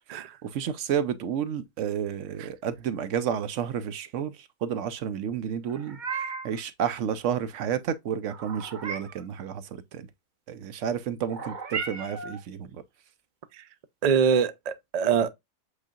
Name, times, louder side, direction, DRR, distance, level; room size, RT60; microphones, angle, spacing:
voice 1, 0.4-6.0 6.4-9.6 9.9-10.1 10.5-12.8, right 8 dB, 65° right, 0.8 m, -31 dB
Meow, 5.7-6.6 8.3-9.3 11.3-12.4, right 5 dB, 40° right, 0.8 m, -35 dB
voice 2, 14.0-15.3, right 6 dB, 85° right, 0.3 m, -24 dB
8.1 x 2.7 x 2.4 m
omnidirectional pair, 1.6 m